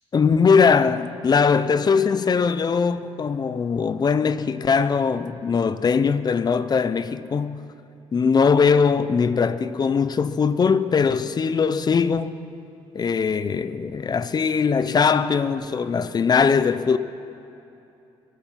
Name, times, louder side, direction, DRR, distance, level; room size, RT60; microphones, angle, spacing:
voice 1, 0.1-7.6 8.1-12.3 12.9-17.0, left 5 dB, 35° left, 0.7 m, -20 dB
25.5 x 9.3 x 5.9 m
cardioid pair, 85°, 12 cm